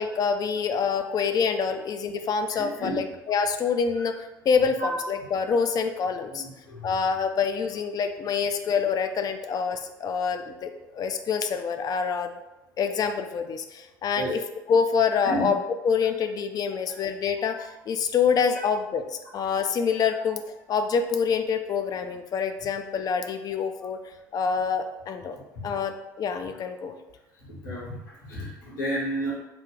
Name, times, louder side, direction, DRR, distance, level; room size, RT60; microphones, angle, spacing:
voice 1, 0.0-6.5 6.8-12.3 12.8-14.4 14.7-15.6 15.8-20.4 20.7-24.0 24.3-25.4 25.6-26.9, left 6 dB, 35° left, 7 dB, 0.4 m, -26 dB
voice 2, 2.5-3.0 3.9-4.0 4.8-4.9 6.3-6.9 14.1-14.3 15.2-15.5 27.5-28.0 28.3-29.3, right 1 dB, 75° left, -6 dB, 1.4 m, -32 dB
3.2 x 2.4 x 3.8 m, 0.99 s
figure-of-eight pair, 60°, 11 cm